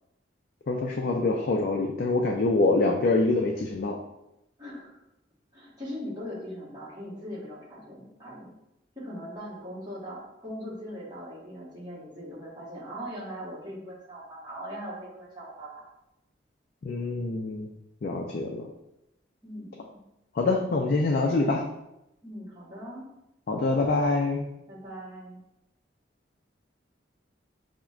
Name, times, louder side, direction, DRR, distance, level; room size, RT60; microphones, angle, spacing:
voice 1, 0.7-4.0 16.8-17.7 18.0-18.7 20.3-21.6 23.5-24.5, left 3 dB, 50° left, 0 dB, 0.3 m, -25 dB
voice 2, 4.6-5.0 5.5-8.5 8.9-15.8 19.4-20.0 22.2-23.1 24.7-25.4, equal, 20° right, -8 dB, 1.2 m, -40 dB
5.8 x 2.1 x 2.3 m, 0.87 s
head